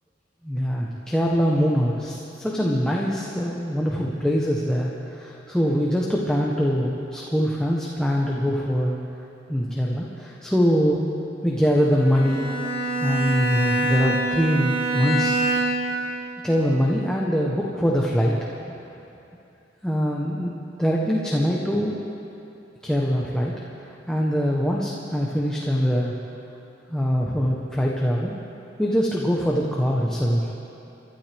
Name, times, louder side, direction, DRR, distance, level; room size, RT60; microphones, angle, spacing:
voice 1, 0.4-8.9 9.5-11.1 11.4-12.5 13.0-15.4 16.4-18.4 19.8-22.1 22.8-23.5 24.1-26.1 26.9-28.4 28.8-30.5, equal, 5° left, -3 dB, 1.0 m, -23 dB
Bowed string instrument, 11.9-16.0, right 2 dB, 25° right, 4.4 m, -25 dB
29.5 x 12.0 x 3.5 m, 2.9 s
head